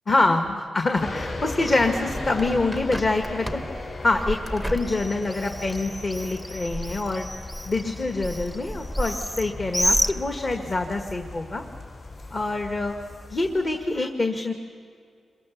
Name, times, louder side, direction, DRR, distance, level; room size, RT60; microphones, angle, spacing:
voice 1, 0.1-3.6 4.0-7.3 7.6-11.6 12.3-12.9 13.3-14.5, left 2 dB, 35° left, 5 dB, 1.5 m, -25 dB
sound 1, 1.0-14.0, left 2 dB, 50° left, 4.2 m, -38 dB
Bird, 1.9-10.8, equal, 5° left, 0.8 m, -31 dB
28.0 x 22.5 x 7.1 m, 2.3 s
wide cardioid pair, 115°, 0 cm